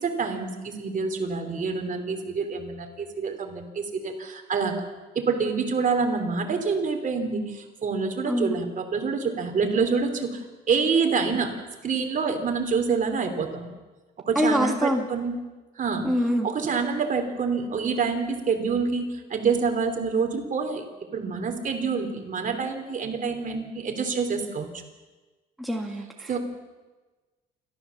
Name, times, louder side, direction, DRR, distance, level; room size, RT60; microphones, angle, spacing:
voice 1, 0.0-4.7 5.1-10.4 10.7-11.5 11.8-13.7 14.3-15.3 15.8-16.1 16.4-20.8 21.1-24.7 26.3-26.4, right 5 dB, 45° right, 5 dB, 3.2 m, -27 dB
voice 2, 8.2-8.6 14.4-15.0 16.0-16.5 25.6-26.3, equal, ahead, 1 dB, 1.9 m, -25 dB
29.0 x 14.0 x 7.2 m, 1.2 s
cardioid pair, 135°, 19 cm